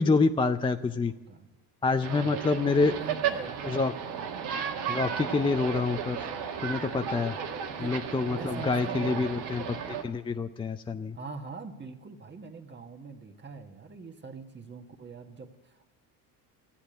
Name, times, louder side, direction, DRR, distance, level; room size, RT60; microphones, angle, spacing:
voice 1, 0.0-1.1 1.8-2.9 3.6-3.9 4.9-6.3 6.6-7.4 7.8-11.2, left 4 dB, 10° left, 7 dB, 0.4 m, -27 dB
voice 2, 0.7-1.6 2.1-4.3 7.7-8.0 8.2-9.5 11.1-15.9, right 4 dB, 25° right, 5 dB, 1.5 m, -43 dB
sound 1, 2.0-10.0, right 7 dB, 75° right, 1.6 m, -34 dB
14.5 x 8.4 x 9.2 m, 1.1 s
supercardioid pair, 85°, 43 cm